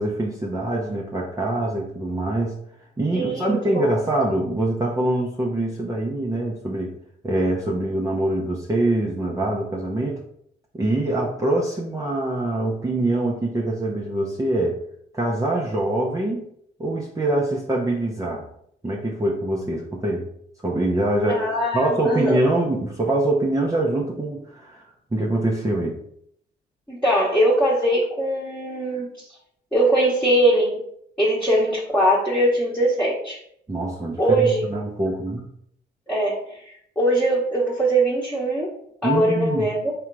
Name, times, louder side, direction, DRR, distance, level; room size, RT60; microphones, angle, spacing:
voice 1, 0.0-2.6 3.0-7.0 7.2-10.2 10.7-14.8 15.1-16.5 16.8-18.5 18.8-20.3 20.6-21.4 21.7-26.0 33.7-35.4 39.0-39.7, right 1 dB, 15° right, -3 dB, 0.8 m, -24 dB
voice 2, 3.1-3.9 21.3-22.4 26.9-29.0 29.7-30.8 31.2-33.4 34.2-34.7 36.1-36.6 37.0-38.7 39.0-39.9, right 1 dB, 5° left, -7 dB, 1.2 m, -21 dB
3.7 x 2.9 x 4.6 m, 0.68 s
cardioid pair, 90°, 20 cm